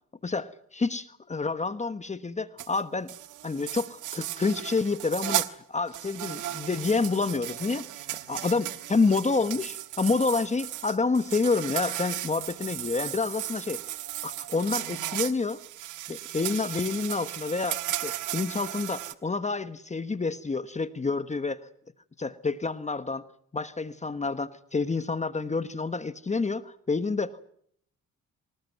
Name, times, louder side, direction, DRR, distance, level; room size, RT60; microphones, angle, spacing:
voice 1, 0.2-3.1 3.4-13.8 14.2-15.6 16.1-21.6 22.2-23.2 23.5-27.4, left 4 dB, 25° left, 12 dB, 1.3 m, -28 dB
sound 1, 2.6-2.8 3.1-5.5 5.9-19.1, right 14 dB, 85° right, 1.5 m, -35 dB
25.0 x 19.5 x 9.3 m, 0.67 s
cardioid pair, 90°, 30 cm